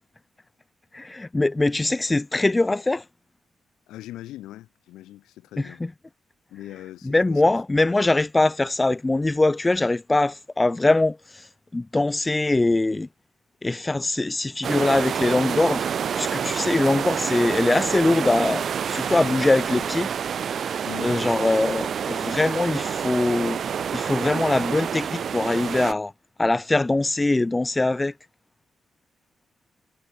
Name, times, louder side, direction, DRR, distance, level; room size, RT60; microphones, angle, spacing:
voice 1, 0.9-3.0 5.6-5.9 7.0-13.1 13.6-15.9 16.1-20.1 21.0-23.6 23.9-26.1 26.4-28.1, left 2 dB, 20° left, 0.7 m, -22 dB
voice 2, 3.9-5.8 6.5-7.9 20.8-21.3, left 15 dB, 90° left, 3.7 m, -41 dB
sound 1, 14.6-25.9, right 7 dB, 65° right, 0.9 m, -28 dB
supercardioid pair, 55°, 0 cm